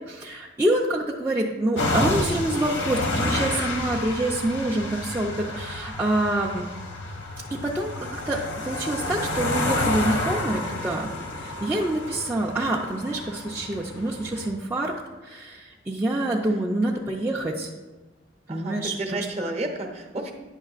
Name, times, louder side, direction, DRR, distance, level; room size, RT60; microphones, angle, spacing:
voice 1, 0.1-6.6 7.7-11.1 11.4-14.9 15.2-17.7 18.5-19.5, right 1 dB, 10° right, -5 dB, 0.4 m, -26 dB
sound 1, 1.8-14.5, left 2 dB, 90° left, 1.0 m, -30 dB
voice 2, 18.5-20.3, right 2 dB, 35° right, 2 dB, 0.8 m, -31 dB
9.7 x 6.4 x 2.4 m, 1.2 s
head